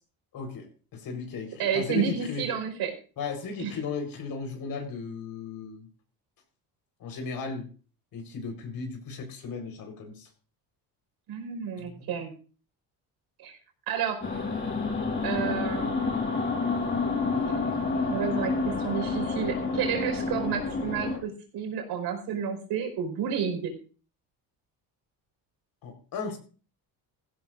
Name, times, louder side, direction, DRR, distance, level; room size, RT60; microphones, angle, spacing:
voice 1, 0.3-2.5 3.2-5.9 7.0-7.7 8.1-10.3 11.8-12.1 25.8-26.4, left 5 dB, 60° left, 4 dB, 4.4 m, -36 dB
voice 2, 1.6-2.9 3.6-3.7 11.3-12.3 13.4-13.6 13.9-14.2 15.2-15.9 18.1-23.7, right 7 dB, 80° right, 4 dB, 5.0 m, -30 dB
sound 1, 14.2-21.2, left 4 dB, 30° left, 5.2 m, -29 dB
18.5 x 16.0 x 2.6 m, 0.37 s
cardioid pair, 125°, 39 cm